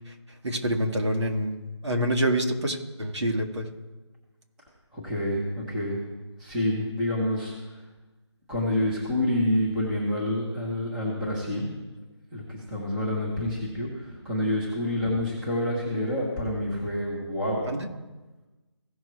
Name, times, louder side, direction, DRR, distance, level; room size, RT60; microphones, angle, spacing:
voice 1, 0.4-1.6 1.8-3.7 17.6-17.9, right 1 dB, 70° right, 2 dB, 2.0 m, -26 dB
voice 2, 4.9-6.0 6.4-7.5 8.5-11.7 12.3-17.7, left 1 dB, 5° right, -7 dB, 1.1 m, -28 dB
16.5 x 6.2 x 3.1 m, 1.1 s
figure-of-eight pair, 170°, 15 cm